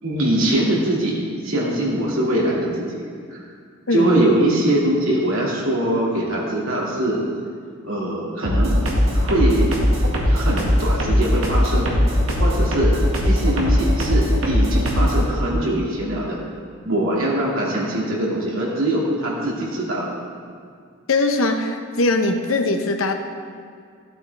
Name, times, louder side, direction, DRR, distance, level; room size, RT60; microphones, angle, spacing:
voice 1, 0.0-1.2 1.4-3.0 3.3-3.4 3.9-7.2 7.8-8.8 9.2-9.7 10.3-11.9 12.4-13.0 13.2-16.4 16.8-20.1, right 1 dB, 90° right, -4 dB, 2.3 m, -22 dB
sound 1, 8.4-15.2, equal, 75° right, 1.8 m, -19 dB
voice 2, 21.1-23.1, left 2 dB, 80° left, 5 dB, 0.9 m, -20 dB
13.0 x 8.2 x 3.4 m, 2.2 s
head